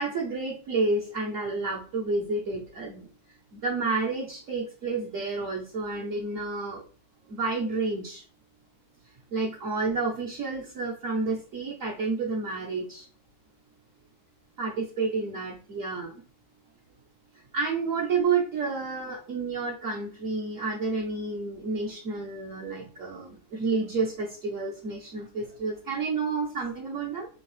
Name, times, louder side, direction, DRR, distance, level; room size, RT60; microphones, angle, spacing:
voice 1, 0.0-3.1 3.5-6.8 7.3-8.2 9.3-13.1 14.6-16.1 17.5-27.3, right 3 dB, 50° right, -5 dB, 1.1 m, -30 dB
3.9 x 3.0 x 3.1 m, 0.38 s
omnidirectional pair, 2.0 m